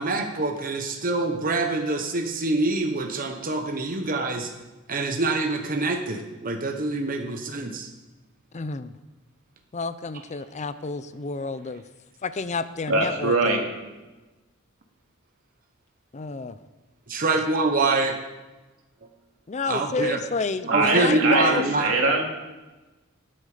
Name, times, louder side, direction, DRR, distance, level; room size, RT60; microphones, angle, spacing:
voice 1, 0.0-4.5 4.9-7.7 17.1-18.1 19.7-20.2 20.6-21.9, right 2 dB, 45° right, 4 dB, 1.1 m, -25 dB
voice 2, 8.5-8.9 9.7-11.8 12.2-13.6 16.1-16.6 19.5-21.7, left 4 dB, 35° left, 13 dB, 0.5 m, -30 dB
voice 3, 12.9-13.7 20.7-21.5 21.8-22.2, right 3 dB, 75° right, 1 dB, 2.6 m, -22 dB
18.5 x 8.7 x 5.0 m, 1.2 s
head